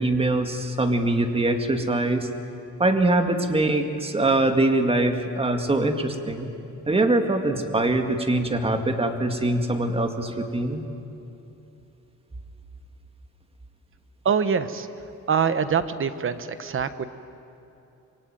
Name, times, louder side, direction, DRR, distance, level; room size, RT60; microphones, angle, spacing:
voice 1, 0.0-2.3 2.8-6.5 6.9-10.8, right 2 dB, 20° right, 5 dB, 2.1 m, -23 dB
voice 2, 14.2-14.9 15.3-17.0, right 6 dB, 40° right, 12 dB, 1.2 m, -24 dB
26.0 x 23.0 x 9.3 m, 2.9 s
cardioid pair, 135°, 31 cm